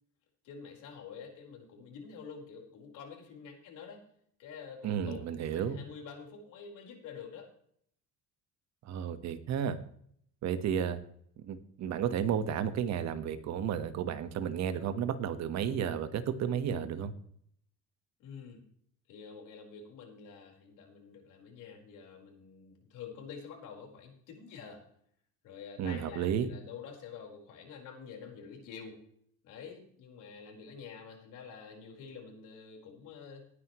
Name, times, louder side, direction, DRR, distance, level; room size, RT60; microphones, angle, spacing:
voice 1, 0.4-4.0 4.4-7.5 18.2-18.7 19.1-24.8 25.4-29.1 29.4-33.5, left 6 dB, 75° left, 1 dB, 4.6 m, -48 dB
voice 2, 4.8-5.8 8.8-9.8 10.4-11.0 11.4-17.1 25.8-26.5, right 8 dB, 60° right, 10 dB, 1.4 m, -32 dB
19.0 x 10.0 x 3.1 m, 0.65 s
cardioid pair, 140°, 31 cm